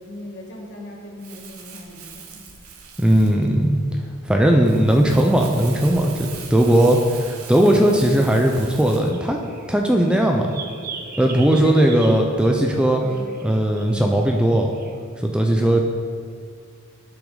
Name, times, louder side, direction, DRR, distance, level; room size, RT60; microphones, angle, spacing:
voice 1, 0.0-2.6 11.6-12.0 13.0-13.2 13.8-14.2, left 2 dB, 55° left, -1 dB, 1.5 m, -38 dB
Crumpling crinkling, 1.2-9.1, right 6 dB, 90° right, 1.0 m, -41 dB
voice 2, 3.0-3.8 4.2-9.4 9.7-10.5 11.2-13.0 13.4-14.8 15.2-15.8, right 1 dB, 5° right, 2 dB, 0.5 m, -18 dB
sound 1, 9.0-15.0, right 4 dB, 45° right, 0.7 m, -39 dB
10.5 x 6.1 x 3.9 m, 2.1 s
head